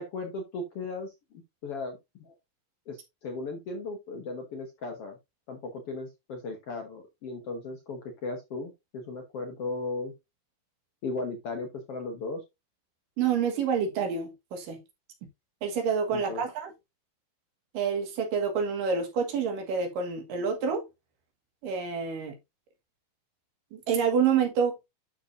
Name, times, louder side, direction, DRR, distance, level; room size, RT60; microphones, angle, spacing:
voice 1, 0.0-2.3 2.9-5.1 5.5-10.1 11.0-12.4 16.1-16.4, left 3 dB, 60° left, 1.6 m, -36 dB
voice 2, 13.2-14.8 15.6-16.7 17.7-20.8 21.6-22.3 23.7-24.7, right 6 dB, 75° right, 3.1 m, -28 dB
12.0 x 4.3 x 2.6 m
omnidirectional pair, 4.0 m